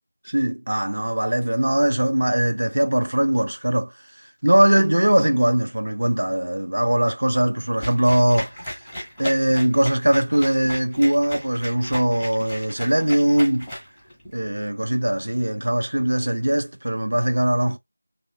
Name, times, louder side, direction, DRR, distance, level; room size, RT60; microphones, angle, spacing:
voice 1, 0.2-3.9 4.4-8.8 9.2-13.7 14.3-17.8, right 1 dB, 70° right, 0.4 m, -21 dB
sound 1, 7.8-14.3, equal, ahead, 1.1 m, -35 dB
3.2 x 3.1 x 2.2 m
figure-of-eight pair, 170°, 0 cm